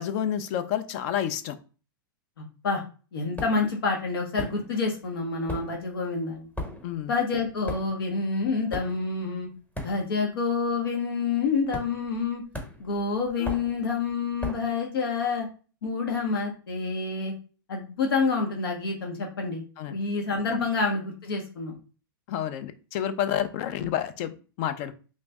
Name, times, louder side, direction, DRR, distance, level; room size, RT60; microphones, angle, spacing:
voice 1, 0.0-1.6 6.8-7.1 13.4-13.5 19.8-20.0 20.5-20.7 22.3-25.0, left 10 dB, 45° left, 11 dB, 0.5 m, -30 dB
voice 2, 2.4-2.8 3.1-6.5 7.1-9.5 9.8-12.4 12.8-15.5 15.8-17.3 17.7-19.6 19.9-21.8, left 4 dB, 85° left, 1 dB, 1.0 m, -28 dB
sound 1, 3.4-3.8 4.3-5.0 5.3-10.4 10.6-11.0 11.7-12.2 12.5-14.8, left 1 dB, 10° left, 1.0 m, -38 dB
3.1 x 2.6 x 3.4 m, 0.37 s
hypercardioid pair, 135°, 12 cm